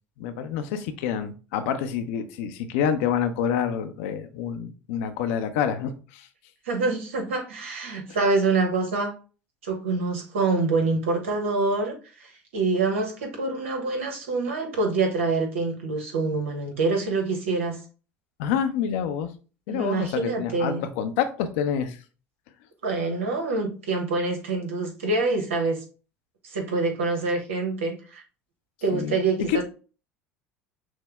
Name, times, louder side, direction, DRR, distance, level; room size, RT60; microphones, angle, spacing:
voice 1, 0.2-6.3 18.4-19.3 19.7-22.0 28.9-29.6, left 8 dB, 75° left, 0.7 m, -27 dB
voice 2, 6.7-9.1 9.6-12.0 12.2-17.8 19.7-20.8 22.8-25.8 26.5-28.2 28.8-29.6, right 3 dB, 90° right, 1.2 m, -26 dB
6.3 x 2.2 x 3.5 m
hypercardioid pair, 80°, 7 cm